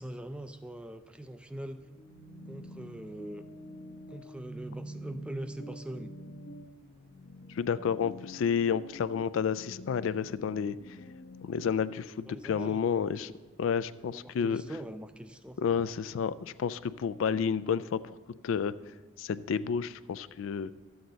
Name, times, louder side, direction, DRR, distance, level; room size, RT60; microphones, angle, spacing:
voice 1, 0.0-1.8 2.5-3.4 4.1-6.1 12.3-12.8 14.1-15.6, right 1 dB, 5° right, 10 dB, 0.3 m, -42 dB
sound 1, 1.8-11.7, equal, 55° left, 0.8 m, -47 dB
voice 2, 7.5-10.8 11.5-13.3 13.6-14.6 15.6-18.2 18.4-18.7 19.2-20.7, left 7 dB, 80° left, 15 dB, 0.3 m, -30 dB
12.5 x 7.9 x 3.9 m, 1.3 s
head